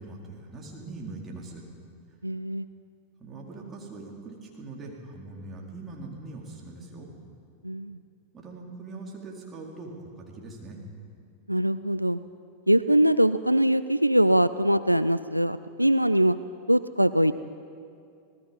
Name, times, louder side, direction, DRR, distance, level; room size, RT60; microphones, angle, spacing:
voice 1, 0.0-1.6 3.2-7.1 8.3-10.8, right 3 dB, 20° right, -2 dB, 4.4 m, -41 dB
voice 2, 2.2-2.6 7.6-8.0 11.5-12.2 12.7-16.4 16.7-17.3, right 1 dB, 90° right, 14 dB, 0.4 m, -22 dB
27.0 x 18.5 x 5.5 m, 2.4 s
figure-of-eight pair, 90°, 0 cm